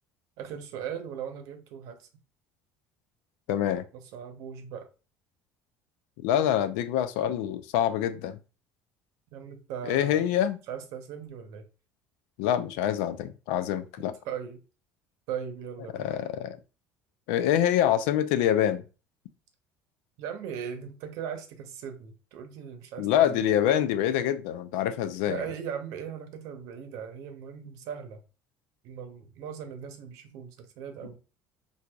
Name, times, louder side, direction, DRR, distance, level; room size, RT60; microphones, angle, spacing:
voice 1, 0.4-2.1 4.1-4.9 9.3-10.3 10.7-11.6 14.2-14.6 15.3-16.1 20.2-23.5 25.3-28.2 28.8-31.2, right 8 dB, 75° right, 0.7 m, -38 dB
voice 2, 3.5-3.8 6.2-8.4 9.9-10.6 12.4-14.1 15.9-16.6 17.3-18.8 23.0-25.4, left 10 dB, 90° left, 0.4 m, -25 dB
4.5 x 2.7 x 2.2 m
cardioid pair, 125°, 6 cm